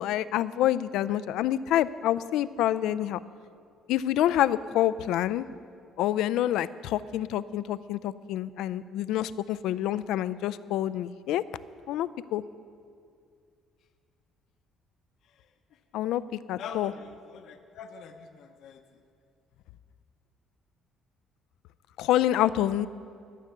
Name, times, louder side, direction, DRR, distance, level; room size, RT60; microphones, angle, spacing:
voice 1, 0.0-3.2 3.9-5.5 6.0-11.4 11.9-12.4 15.9-16.9 22.0-22.9, left 12 dB, 85° left, 15 dB, 0.4 m, -27 dB
voice 2, 16.6-18.8, left 6 dB, 65° left, 6 dB, 0.8 m, -43 dB
13.5 x 6.6 x 9.6 m, 2.3 s
cardioid pair, 135°, 0 cm